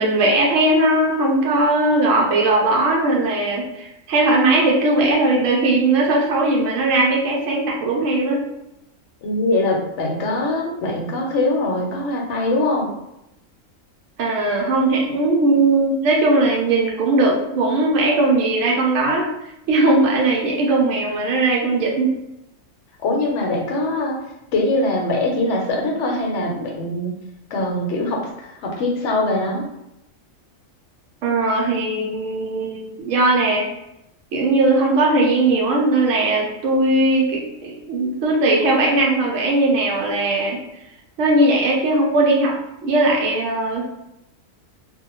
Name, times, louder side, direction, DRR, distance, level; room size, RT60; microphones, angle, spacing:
voice 1, 0.0-8.4 14.2-19.3 19.7-22.1 31.2-33.6 34.3-40.6 41.2-42.6 42.8-43.9, right 2 dB, 75° right, -2 dB, 1.0 m, -18 dB
voice 2, 9.2-12.9 23.0-24.1 24.5-27.1 27.5-29.7, left 2 dB, 65° left, 0 dB, 0.9 m, -22 dB
2.6 x 2.1 x 2.9 m, 0.87 s
omnidirectional pair, 1.4 m